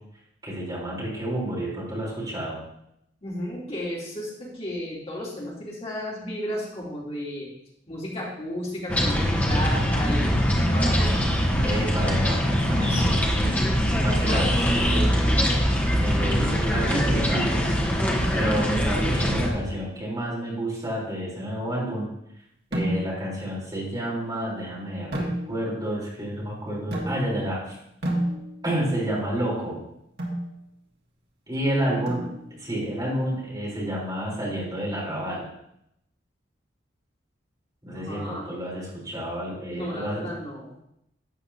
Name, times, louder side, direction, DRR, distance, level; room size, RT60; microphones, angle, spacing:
voice 1, 0.4-2.6 11.6-13.2 14.0-15.1 16.0-17.9 18.3-22.1 22.7-27.8 28.6-29.8 31.5-35.5 37.8-40.3, right 1 dB, 20° right, -6 dB, 3.9 m, -30 dB
voice 2, 3.2-7.5 7.9-10.3 10.7-11.3 12.9-13.4 14.3-14.9 18.1-18.4 31.7-32.0 37.9-38.4 39.7-40.7, left 1 dB, 35° left, -5 dB, 3.2 m, -34 dB
sound 1, 8.9-19.5, equal, 10° left, 1.2 m, -22 dB
sound 2, 22.7-23.3 25.1-25.9 26.9-27.5 28.0-28.8 30.2-30.5 32.1-32.7, right 1 dB, 65° right, 2.0 m, -30 dB
12.0 x 8.0 x 2.8 m, 0.78 s
head